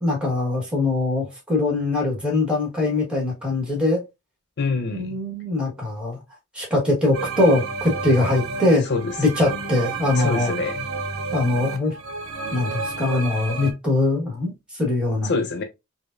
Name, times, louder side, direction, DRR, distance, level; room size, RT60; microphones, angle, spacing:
voice 1, 0.0-4.0 4.9-6.2 6.5-8.8 9.2-10.5 11.3-11.9 12.5-15.3, left 2 dB, 5° right, 1.3 m, -22 dB
voice 2, 4.6-5.2 8.9-9.1 10.2-10.9 15.2-15.6, left 4 dB, 50° left, 0.4 m, -25 dB
sound 1, 7.1-13.7, right 4 dB, 70° right, 0.7 m, -30 dB
4.9 x 2.0 x 2.4 m
head